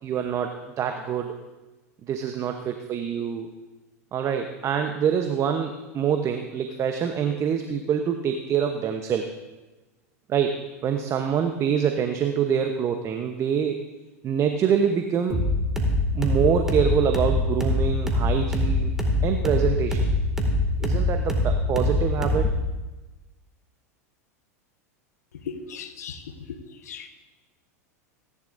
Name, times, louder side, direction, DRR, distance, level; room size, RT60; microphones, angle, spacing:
voice 1, 0.0-1.3 2.1-3.5 4.1-9.3 10.3-13.8 14.2-15.4 16.1-18.9 19.2-20.0 20.8-22.5, right 8 dB, 35° right, 6 dB, 1.0 m, -25 dB
sound 1, 15.3-22.7, left 1 dB, 5° right, 2.3 m, -24 dB
voice 2, 25.5-26.2 26.5-26.6 26.9-27.1, left 6 dB, 75° left, 6 dB, 1.2 m, -36 dB
26.0 x 11.0 x 2.7 m, 1.1 s
hypercardioid pair, 95°, 9 cm